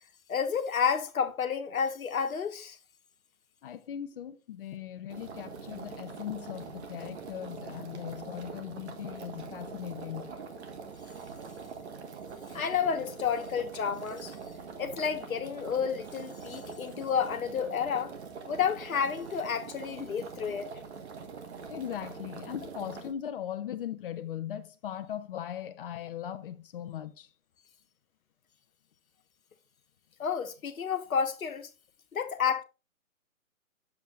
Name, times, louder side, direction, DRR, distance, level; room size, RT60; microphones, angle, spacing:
voice 1, 0.3-2.8 12.5-14.3 14.8-18.1 18.5-20.7 30.2-31.7 32.1-32.6, left 7 dB, 70° left, 1.3 m, -30 dB
voice 2, 3.6-10.3 21.7-27.3, left 10 dB, 40° left, 0.8 m, -39 dB
sound 1, 5.1-23.1, right 5 dB, 50° right, 1.5 m, -44 dB
9.3 x 7.2 x 2.4 m
hypercardioid pair, 140°, 43 cm